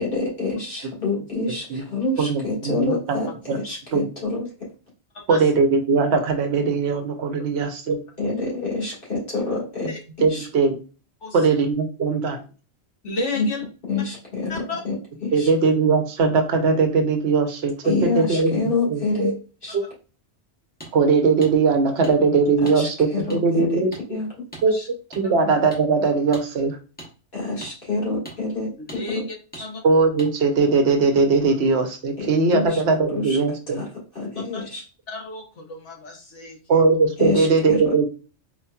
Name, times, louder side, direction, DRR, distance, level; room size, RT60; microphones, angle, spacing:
voice 1, 0.0-4.7 8.2-9.9 10.3-10.5 13.4-13.5 13.9-15.0 15.2-15.5 17.8-19.7 22.6-24.5 27.3-29.3 29.5-29.6 32.2-32.8 33.1-33.4 33.7-34.8 37.2-38.1, left 3 dB, 50° left, -5 dB, 1.7 m, -27 dB
voice 2, 2.2-3.2 3.5-3.6 3.9-4.1 5.3-8.0 10.2-10.8 11.3-12.4 15.3-17.7 18.2-18.6 18.9-19.3 19.7-19.8 20.9-23.9 24.6-24.8 25.2-26.8 29.8-33.8 36.7-38.1, right 4 dB, 70° right, 5 dB, 0.9 m, -20 dB
voice 3, 11.2-11.6 13.0-13.6 14.5-14.8 19.8-19.9 24.7-24.9 25.2-25.3 28.9-29.2 29.6-29.8 34.5-34.6 35.1-36.8, left 3 dB, 85° left, -1 dB, 1.4 m, -32 dB
sound 1, 20.8-20.9 21.4-21.5 22.0-22.1 22.7-22.8 23.3-23.4 23.9-24.0 24.5-24.7 25.1-25.2 25.7-25.8 26.3-26.5 27.0-27.1 27.6-27.7 28.3-28.4 28.9-29.0 29.5-29.7 30.2-30.3, right 1 dB, 10° left, 1.0 m, -39 dB
4.3 x 2.8 x 2.3 m, 0.35 s
omnidirectional pair, 1.2 m